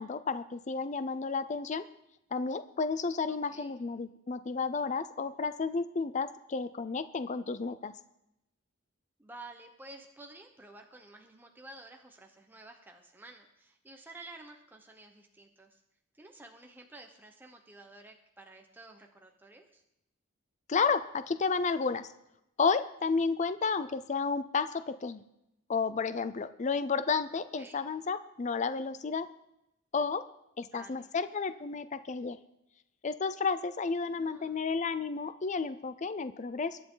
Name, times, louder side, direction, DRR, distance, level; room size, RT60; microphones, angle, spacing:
voice 1, 0.0-1.8 2.3-7.9 20.7-22.1 22.6-25.2 25.7-29.3 29.9-30.2 30.6-32.4 33.0-36.8, left 4 dB, 35° left, 12 dB, 0.4 m, -32 dB
voice 2, 3.3-3.7 9.2-15.8 16.2-19.8 27.6-27.8 30.6-31.1 34.1-34.6, right 2 dB, 10° right, 2 dB, 1.0 m, -52 dB
23.0 x 9.4 x 3.9 m, 0.85 s
head